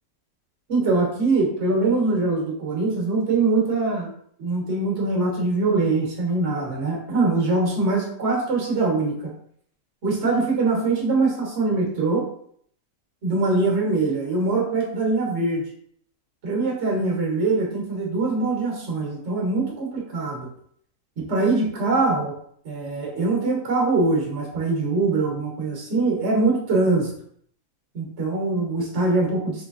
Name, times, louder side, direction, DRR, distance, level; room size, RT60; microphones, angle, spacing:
voice 1, 0.7-4.1 4.4-9.2 10.0-12.3 13.2-15.6 16.4-20.5 21.2-22.3 22.6-27.1 27.9-29.6, right 3 dB, 50° right, -1 dB, 1.3 m, -23 dB
4.0 x 3.2 x 2.5 m, 0.64 s
omnidirectional pair, 1.6 m